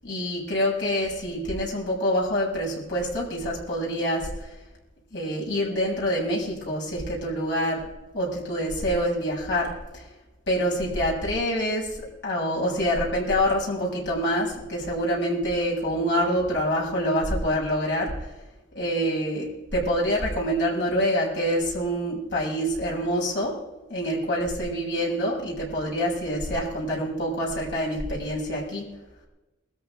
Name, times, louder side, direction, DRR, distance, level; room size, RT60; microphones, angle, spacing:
voice 1, 0.0-4.6 5.1-7.8 8.1-10.1 10.5-18.3 18.7-23.5 23.9-28.9, equal, 65° left, -4 dB, 6.7 m, -26 dB
22.0 x 14.0 x 3.7 m, 1.1 s
head